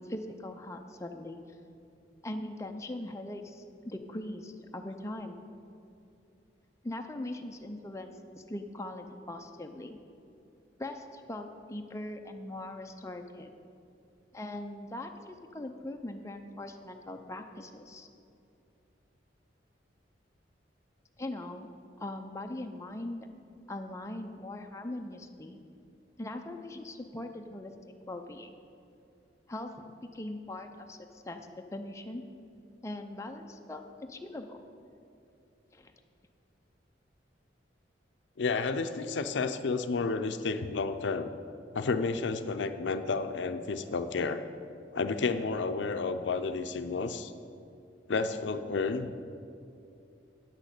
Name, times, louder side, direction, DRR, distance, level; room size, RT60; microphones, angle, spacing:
voice 1, 0.0-1.4 2.2-5.4 6.8-10.0 10.8-13.5 14.3-18.1 21.2-21.7 22.0-23.3 23.7-25.6 26.2-27.7 28.1-28.5 29.5-32.2 32.8-34.6 35.7-35.9, left 1 dB, 15° left, 4 dB, 0.5 m, -41 dB
voice 2, 38.4-41.3 41.7-44.4 44.9-47.3 48.1-49.1, left 4 dB, 75° left, 9 dB, 0.5 m, -31 dB
8.9 x 6.3 x 8.2 m, 2.6 s
head